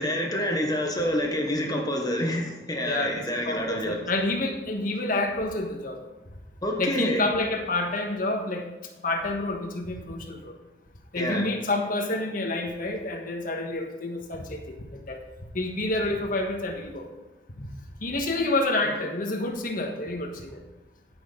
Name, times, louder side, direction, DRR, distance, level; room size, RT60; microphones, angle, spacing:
voice 1, 0.0-4.0 6.6-7.2 11.1-11.5, equal, 20° left, 2 dB, 1.1 m, -27 dB
voice 2, 2.8-6.0 6.8-8.6 9.0-10.5 11.1-14.7 15.1-15.2 15.5-17.1 18.0-20.6, left 2 dB, 50° left, 3 dB, 1.4 m, -28 dB
14.0 x 6.4 x 3.9 m, 1.1 s
head